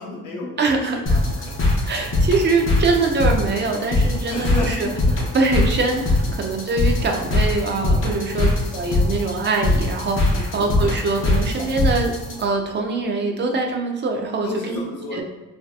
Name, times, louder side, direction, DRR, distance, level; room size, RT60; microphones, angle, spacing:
voice 1, 0.0-0.8 1.1-1.8 4.3-5.1 7.9-8.4 10.3-10.6 14.4-15.2, left 3 dB, 85° left, -1 dB, 0.7 m, -33 dB
voice 2, 0.6-1.2 1.9-4.9 5.3-12.1 12.4-14.8 15.1-15.2, right 3 dB, 35° right, 2 dB, 0.4 m, -23 dB
sound 1, 1.1-12.4, left 2 dB, 40° left, 0.7 m, -22 dB
2.7 x 2.1 x 2.3 m, 1.2 s
cardioid pair, 100°, 32 cm